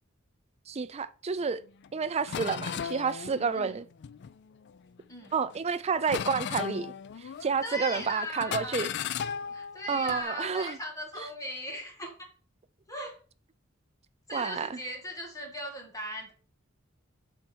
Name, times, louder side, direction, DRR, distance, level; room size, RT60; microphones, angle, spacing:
voice 1, 0.7-1.6 1.9-3.8 5.3-6.9 7.4-8.9 9.9-10.8 14.3-14.7, right 5 dB, 30° right, 0.4 m, -30 dB
sound 1, 1.8-1.9 2.3-4.8 5.2-5.7 6.1-7.7 7.9-8.1 8.4-10.2, left 8 dB, 55° left, 0.4 m, -36 dB
voice 2, 7.4-8.8 9.5-12.3 12.9-13.2 14.3-16.3, equal, 15° left, 2.0 m, -38 dB
7.5 x 4.4 x 4.5 m
head